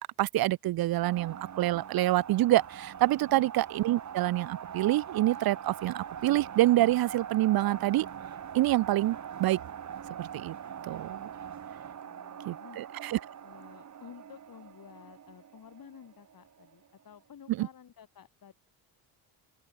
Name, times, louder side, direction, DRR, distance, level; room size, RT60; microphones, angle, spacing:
voice 1, 0.2-8.1 8.5-9.6 10.2-10.5 10.8-11.3 12.5-13.2 17.6-17.7, right 15 dB, 55° right, 0.6 m, -27 dB
sound 1, 1.0-16.9, right 8 dB, 40° right, 1.6 m, -43 dB
voice 2, 12.0-12.8 13.4-18.5, left 8 dB, 50° left, 6.6 m, -52 dB
open air
cardioid pair, 95°, 44 cm